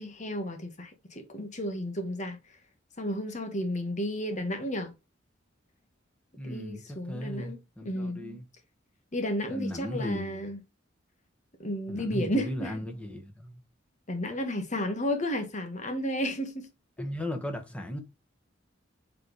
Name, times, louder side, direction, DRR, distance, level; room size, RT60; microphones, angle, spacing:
voice 1, 0.0-2.4 3.0-4.9 6.4-7.6 7.8-8.2 9.1-10.6 11.6-12.7 14.1-16.7 17.0-17.1, equal, 40° left, 1.4 m, -32 dB
voice 2, 6.4-8.4 9.4-10.5 11.9-13.6 17.0-18.0, left 1 dB, 5° left, 1.6 m, -36 dB
7.5 x 4.4 x 3.2 m
head